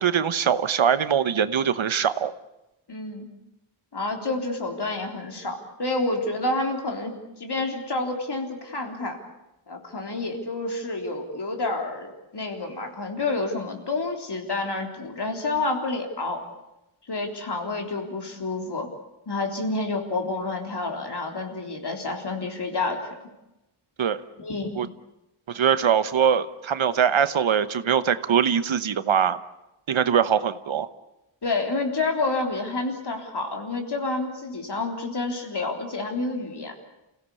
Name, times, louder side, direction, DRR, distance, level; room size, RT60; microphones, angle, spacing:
voice 1, 0.0-2.3 24.0-24.2 24.8-24.9 25.5-29.4 29.9-30.9, right 8 dB, 70° right, 13 dB, 1.1 m, -22 dB
voice 2, 2.9-3.3 3.9-9.2 9.7-16.5 17.1-18.9 19.3-23.3 24.4-24.8 31.4-36.7, left 2 dB, 50° left, 3 dB, 3.7 m, -29 dB
28.5 x 17.0 x 8.4 m, 0.94 s
wide cardioid pair, 135°, 50 cm